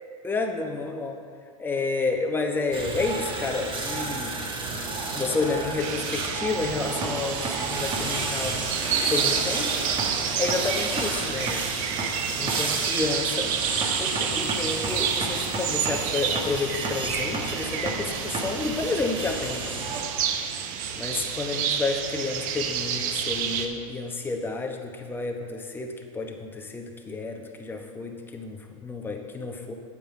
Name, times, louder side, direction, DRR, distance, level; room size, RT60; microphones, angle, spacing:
voice 1, 0.2-1.2 1.6-4.4 5.1-8.7 9.0-9.9 10.4-11.7 12.4-13.5 14.0-19.8 20.9-29.7, left 3 dB, 10° left, 3 dB, 0.9 m, -30 dB
sound 1, 2.7-20.0, right 3 dB, 25° right, 1.3 m, -31 dB
sound 2, 5.8-23.7, right 8 dB, 45° right, 0.8 m, -30 dB
9.0 x 7.6 x 4.4 m, 2.2 s
hypercardioid pair, 110°, 18 cm